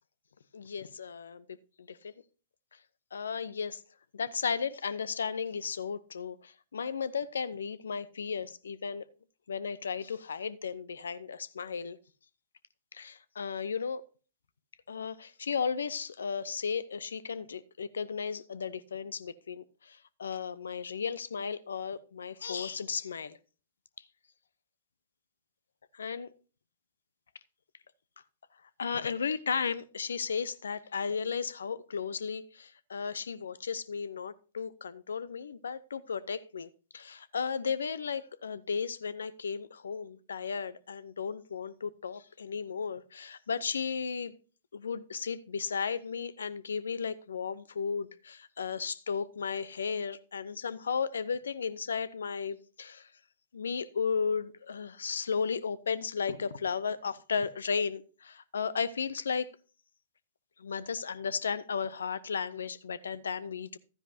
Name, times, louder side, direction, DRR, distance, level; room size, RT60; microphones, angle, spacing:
voice 1, 0.5-1.5 1.8-2.1 3.1-3.8 4.1-9.0 9.5-12.0 12.9-14.0 14.9-23.4 25.9-26.3 28.8-44.3 44.7-53.1 53.5-59.5 60.6-63.8, left 6 dB, 75° left, 0.6 m, -34 dB
12.5 x 9.9 x 2.7 m
figure-of-eight pair, 110°, 0 cm